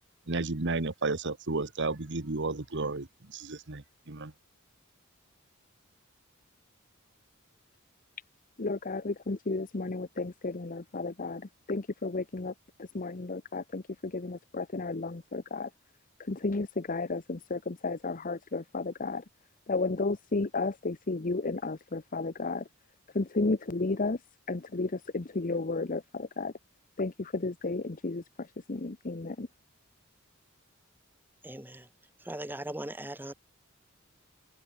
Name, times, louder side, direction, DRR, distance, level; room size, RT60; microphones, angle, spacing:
voice 1, 0.3-4.3, right 3 dB, 60° right, 1.4 m, -33 dB
voice 2, 8.6-12.5 12.8-15.7 16.2-19.2 19.7-22.7 23.1-24.2 24.5-26.5 27.0-29.5, left 3 dB, 40° left, 0.9 m, -33 dB
voice 3, 31.4-31.9 32.2-33.3, right 1 dB, 10° right, 1.5 m, -39 dB
head